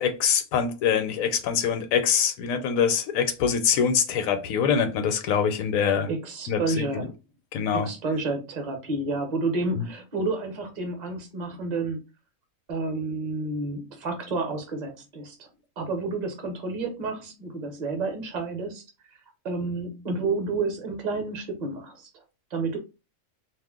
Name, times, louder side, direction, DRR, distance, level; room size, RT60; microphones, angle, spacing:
voice 1, 0.0-6.1 6.5-7.0 7.5-7.9 9.8-9.9, left 7 dB, 80° left, 1.0 m, -24 dB
voice 2, 6.1-7.1 7.7-12.0 12.7-15.5 15.8-19.2 19.4-22.2 22.5-22.8, right 3 dB, 40° right, 0.7 m, -30 dB
2.4 x 2.1 x 3.5 m
omnidirectional pair, 1.4 m